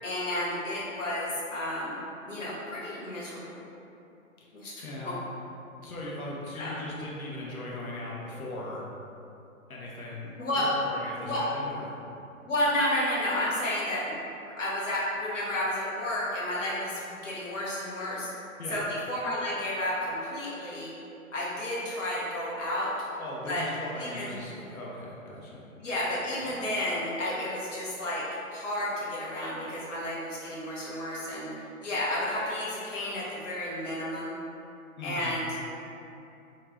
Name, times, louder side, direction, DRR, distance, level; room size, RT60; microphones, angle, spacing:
voice 1, 0.0-3.6 4.6-4.7 5.0-5.1 6.6-6.8 10.4-10.7 11.2-11.5 12.4-14.1 14.6-18.3 18.7-20.9 21.3-22.9 23.5-23.7 23.9-24.3 25.8-28.3 28.5-34.3 35.0-35.6, left 1 dB, 60° left, -7 dB, 1.1 m, -31 dB
voice 2, 4.8-5.2 5.8-8.8 9.7-11.9 18.6-18.8 23.2-25.6 26.4-26.5 35.0-35.4, left 1 dB, 80° left, -5 dB, 0.7 m, -39 dB
2.9 x 2.4 x 3.0 m, 2.8 s
figure-of-eight pair, 130°, 42 cm